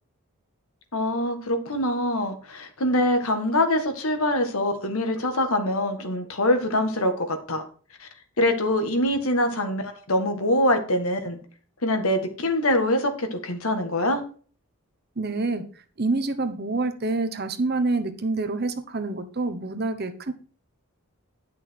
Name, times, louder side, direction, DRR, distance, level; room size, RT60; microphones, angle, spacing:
voice 1, 0.9-7.6 8.0-8.1 8.4-11.4 11.8-14.2, left 1 dB, 75° left, 6 dB, 1.7 m, -24 dB
voice 2, 15.2-15.6 16.0-20.3, right 3 dB, 45° right, 9 dB, 1.0 m, -27 dB
10.5 x 6.2 x 4.6 m, 0.41 s
head